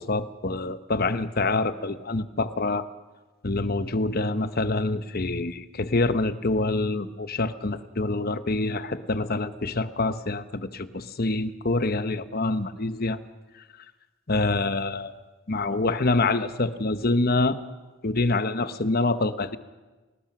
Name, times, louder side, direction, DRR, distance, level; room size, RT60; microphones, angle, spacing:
voice 1, 0.0-2.8 3.4-13.2 14.3-15.1 15.5-17.6 18.0-19.6, left 2 dB, 45° left, 12 dB, 1.0 m, -26 dB
30.0 x 19.5 x 6.1 m, 1.2 s
head